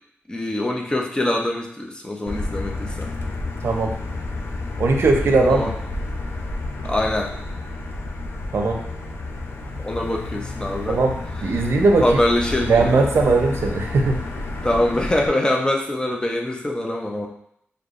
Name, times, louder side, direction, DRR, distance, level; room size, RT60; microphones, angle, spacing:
voice 1, 0.3-3.1 5.5-5.7 6.8-7.3 9.8-11.0 12.0-12.9 14.6-17.3, left 1 dB, 20° left, 0 dB, 0.6 m, -23 dB
Motor vehicle (road), 2.3-15.3, left 2 dB, 70° left, 0.5 m, -30 dB
voice 2, 3.6-3.9 4.8-5.7 8.5-8.8 10.9-11.1 11.4-12.1 12.6-14.2, right 3 dB, 70° right, 3 dB, 0.6 m, -19 dB
6.4 x 2.2 x 2.5 m, 0.72 s
wide cardioid pair, 120°, 4 cm